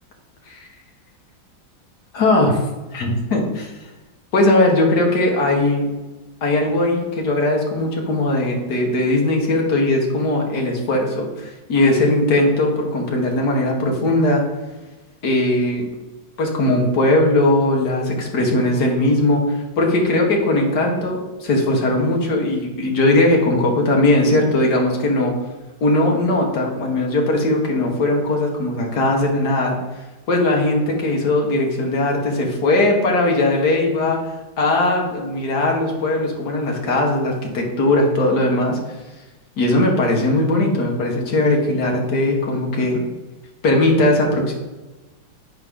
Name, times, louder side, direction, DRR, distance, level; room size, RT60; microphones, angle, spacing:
voice 1, 2.1-2.6 2.9-3.7 4.3-5.9 6.4-14.4 15.2-15.9 16.4-25.3 25.8-29.8 30.3-34.2 34.6-38.8 39.6-43.0 43.6-44.5, left 2 dB, 60° left, 0 dB, 1.8 m, -19 dB
8.7 x 4.8 x 3.6 m, 1.1 s
omnidirectional pair, 2.0 m